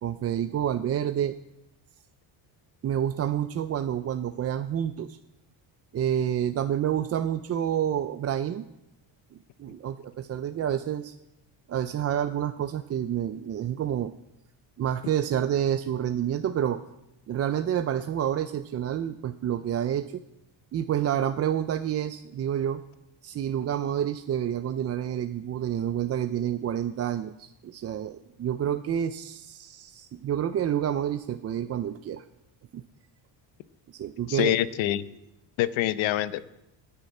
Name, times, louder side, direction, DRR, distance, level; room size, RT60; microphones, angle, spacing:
voice 1, 0.0-1.4 2.8-5.2 5.9-8.7 9.6-11.1 11.7-14.1 14.8-16.8 17.3-20.2 20.7-22.8 23.2-32.2 32.7-32.8 33.9-34.6, right 10 dB, 35° right, 10 dB, 0.4 m, -28 dB
voice 2, 34.3-35.0 35.6-36.5, left 14 dB, 85° left, 15 dB, 0.8 m, -25 dB
10.0 x 9.8 x 8.5 m, 0.89 s
cardioid pair, 140°, 46 cm